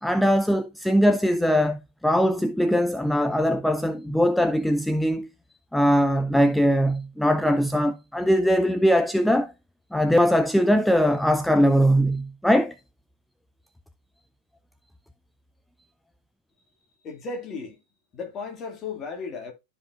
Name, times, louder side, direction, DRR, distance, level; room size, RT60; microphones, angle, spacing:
voice 1, 0.0-5.3 5.7-9.5 9.9-12.7, equal, ahead, 0.4 m, -21 dB
voice 2, 17.0-17.8 18.1-19.5, left 4 dB, 30° left, 2.2 m, -35 dB
12.5 x 4.8 x 2.5 m
figure-of-eight pair, 90°, 0 cm